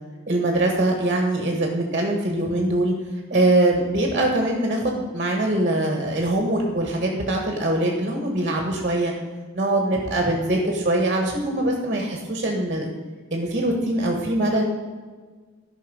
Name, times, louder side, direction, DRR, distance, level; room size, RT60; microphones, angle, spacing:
voice 1, 0.3-2.9 3.3-9.1 9.5-12.9 13.3-14.6, right 1 dB, 35° right, 1 dB, 1.5 m, -22 dB
13.5 x 5.5 x 5.5 m, 1.4 s
head